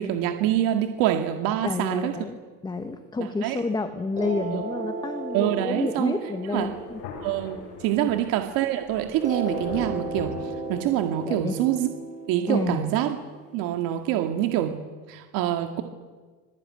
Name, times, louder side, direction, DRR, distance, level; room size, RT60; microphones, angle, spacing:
voice 1, 0.0-2.1 3.4-3.6 4.5-4.6 5.3-6.1 6.5-6.7 7.2-10.4 10.7-11.9 12.3-13.2 13.5-14.8 15.1-15.8, right 12 dB, 60° right, 5 dB, 2.1 m, -25 dB
voice 2, 1.6-7.0 8.0-8.2 11.2-11.6 12.5-12.9, left 3 dB, 10° left, 7 dB, 1.4 m, -30 dB
sound 1, 4.2-8.5 9.2-14.2, right 3 dB, 20° right, 7.2 m, -36 dB
Thunder, 6.5-11.3, left 5 dB, 85° left, 7.3 m, -40 dB
26.0 x 21.5 x 9.8 m, 1.4 s
cardioid pair, 155°, 38 cm